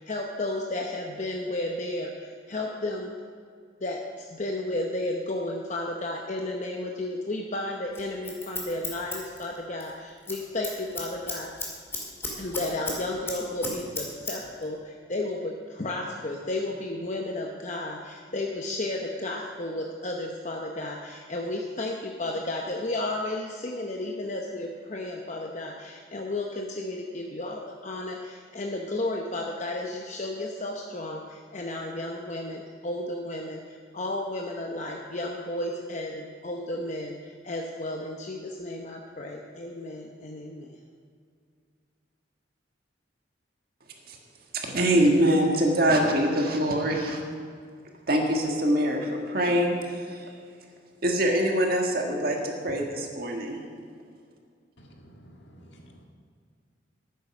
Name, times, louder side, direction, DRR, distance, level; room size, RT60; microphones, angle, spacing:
voice 1, 0.0-3.1 3.8-11.5 12.4-40.8, left 1 dB, 40° left, 1 dB, 0.8 m, -33 dB
Scissors, 7.9-9.9 10.2-10.4 10.6-13.0 13.3-14.3 14.6-14.7, left 2 dB, 15° left, 2.1 m, -34 dB
voice 2, 44.6-47.2 48.1-50.2 51.0-53.6, right 1 dB, 55° right, 1 dB, 1.7 m, -24 dB
voice 3, 55.2-56.0, equal, 70° left, 1 dB, 1.8 m, -51 dB
12.0 x 9.3 x 5.9 m, 2.2 s
head